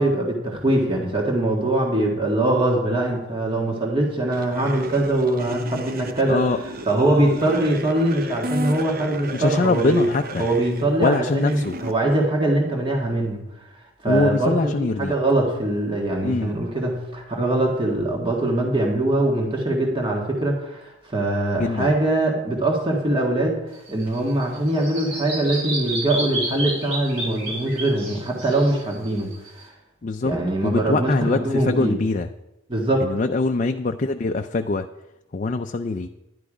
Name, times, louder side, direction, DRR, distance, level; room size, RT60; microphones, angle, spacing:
voice 1, 0.0-6.4 6.9-10.1 10.4-13.4 14.0-23.6 23.9-29.6 30.2-32.0 32.7-33.1, right 1 dB, 25° right, -1 dB, 1.7 m, -22 dB
sound 1, 4.3-11.9, right 1 dB, 45° right, 0.7 m, -34 dB
voice 2, 6.3-6.6 9.3-10.5 11.0-11.8 14.0-15.1 16.2-16.5 21.6-21.9 30.0-32.3 33.0-34.9 35.3-36.1, left 3 dB, 35° left, 6 dB, 0.4 m, -23 dB
Bird vocalization bird call bird song, 23.7-29.6, right 2 dB, 75° right, 5.7 m, -31 dB
11.5 x 10.5 x 5.0 m, 0.93 s
head